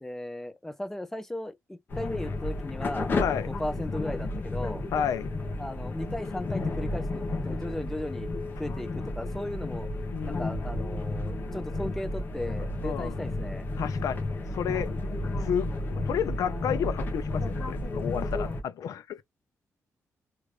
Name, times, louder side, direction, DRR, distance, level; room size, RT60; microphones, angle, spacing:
voice 1, 0.0-3.1 3.5-4.8 5.6-8.3 8.6-9.9 10.2-13.7, left 1 dB, 5° left, 0.5 m, -37 dB
sound 1, 1.9-18.6, left 2 dB, 35° left, 0.9 m, -32 dB
voice 2, 3.2-3.5 4.9-5.3 10.1-10.5 12.8-13.1 13.8-14.2 14.5-14.9 15.4-19.2, left 8 dB, 80° left, 0.5 m, -31 dB
3.0 x 2.5 x 3.2 m
wide cardioid pair, 175°, 6 cm